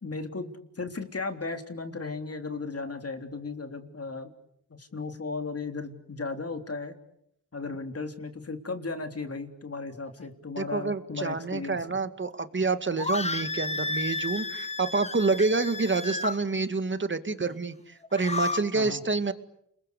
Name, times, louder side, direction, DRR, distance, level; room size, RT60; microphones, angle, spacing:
voice 1, 0.0-4.3 4.8-7.0 7.5-11.8 18.7-19.0, left 3 dB, 40° left, 6 dB, 3.5 m, -35 dB
voice 2, 10.6-19.3, right 3 dB, 30° right, 11 dB, 2.2 m, -28 dB
sound 1, 13.0-16.4 18.0-18.6, left 3 dB, 20° left, 1.5 m, -32 dB
29.5 x 22.0 x 8.3 m, 0.75 s
cardioid pair, 60°, 36 cm